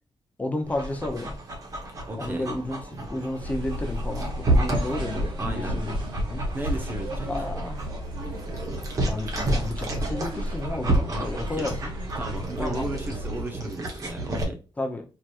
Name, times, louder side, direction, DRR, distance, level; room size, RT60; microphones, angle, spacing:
voice 1, 0.4-1.3 2.2-2.8 3.1-6.0 6.3-6.4 7.3-7.8 9.1-11.9 12.6-12.9 14.8-15.0, left 2 dB, 15° left, 0.7 m, -31 dB
Dog, 0.6-14.4, right 1 dB, 40° right, 1.2 m, -30 dB
voice 2, 2.1-2.5 5.4-5.8 6.5-7.5 11.1-11.8 12.1-14.6, right 1 dB, 20° right, 0.7 m, -35 dB
sound 1, 3.4-13.4, equal, 60° right, 1.2 m, -34 dB
4.7 x 3.0 x 2.5 m
wide cardioid pair, 175°, 9 cm